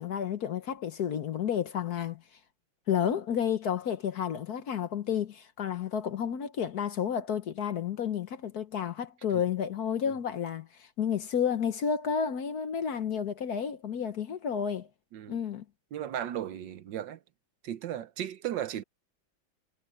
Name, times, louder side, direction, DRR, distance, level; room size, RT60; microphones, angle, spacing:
voice 1, 0.0-2.2 2.9-14.9 15.3-15.6, left 8 dB, 55° left, 1.3 m, -31 dB
voice 2, 15.9-17.2 17.6-18.8, right 10 dB, 70° right, 1.4 m, -35 dB
omnidirectional pair, 2.2 m